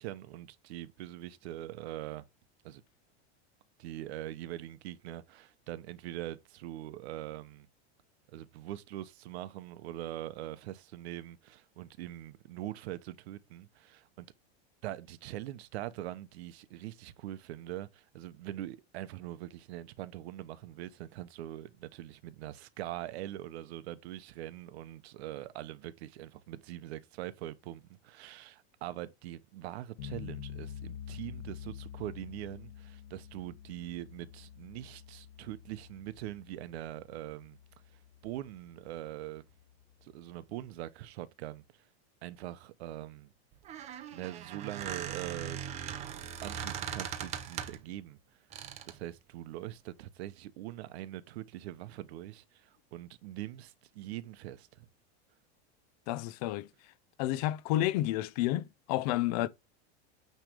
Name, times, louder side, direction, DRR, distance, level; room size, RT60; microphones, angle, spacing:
voice 1, 0.0-2.3 2.6-2.8 3.8-7.7 8.3-14.3 14.8-37.6 38.2-39.4 40.0-41.6 42.2-43.3 44.1-45.8 46.4-48.2 48.8-54.9, right 14 dB, 70° right, 0.9 m, -43 dB
sound 1, 30.0-40.9, left 9 dB, 75° left, 1.4 m, -48 dB
Squeak, 43.5-47.9 48.5-49.0, right 9 dB, 20° right, 0.6 m, -40 dB
voice 2, 56.1-56.7 57.2-59.5, left 14 dB, 35° left, 0.4 m, -30 dB
9.2 x 3.3 x 5.0 m
supercardioid pair, 170°, 33 cm